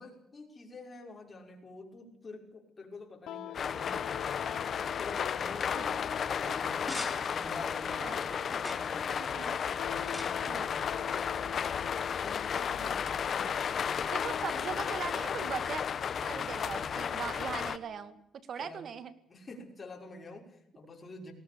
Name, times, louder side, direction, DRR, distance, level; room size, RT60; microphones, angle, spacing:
voice 1, 0.0-4.6 5.0-6.8 7.1-9.4 9.7-11.4 12.1-14.0 16.7-17.0 17.3-17.5 18.6-18.8 19.3-21.3, left 3 dB, 30° left, 1 dB, 6.0 m, -48 dB
sound 1, 3.3-18.2, left 11 dB, 80° left, 0.9 m, -46 dB
sound 2, 3.5-17.8, left 7 dB, 55° left, 1.3 m, -33 dB
sound 3, 6.6-12.1, equal, 5° right, 5.4 m, -47 dB
voice 2, 9.2-9.6 10.4-10.7 14.1-15.8 16.2-19.1, right 7 dB, 60° right, 13 dB, 2.1 m, -40 dB
19.5 x 18.0 x 8.8 m, 0.78 s
cardioid pair, 90°, 0 cm